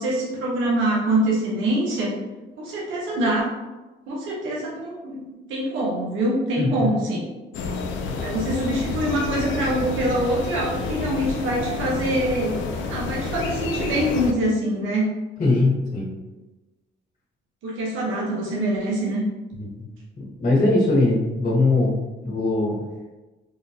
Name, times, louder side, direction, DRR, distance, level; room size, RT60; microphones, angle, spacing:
voice 1, 0.0-2.1 2.6-3.5 4.1-7.2 8.2-12.6 12.9-15.1 17.6-19.2, right 1 dB, 80° right, -4 dB, 0.9 m, -24 dB
voice 2, 6.6-6.9 15.4-16.1 19.6-19.8 20.2-22.8, left 2 dB, 40° left, -4 dB, 1.0 m, -21 dB
sound 1, 7.5-14.3, left 4 dB, 70° left, 0.5 m, -29 dB
3.7 x 2.2 x 2.7 m, 1.1 s
cardioid pair, 90°, 20 cm